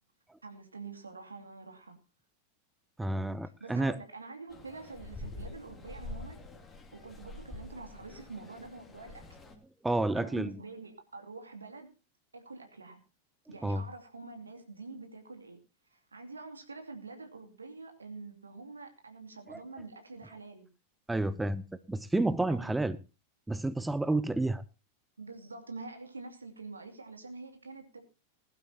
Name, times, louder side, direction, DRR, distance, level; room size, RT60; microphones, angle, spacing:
voice 1, 0.4-2.0 3.4-6.4 6.9-9.2 10.2-11.9 12.3-13.0 13.5-15.6 15.9-20.7 22.5-22.7 25.2-28.0, right 3 dB, 75° right, 2.6 m, -46 dB
voice 2, 3.0-4.0 9.8-10.6 13.6-13.8 19.5-19.6 21.1-23.0 23.5-24.6, right 2 dB, 5° right, 0.6 m, -30 dB
sound 1, 4.5-9.5, left 2 dB, 15° left, 2.7 m, -46 dB
20.0 x 12.0 x 2.9 m
figure-of-eight pair, 90°, 0 cm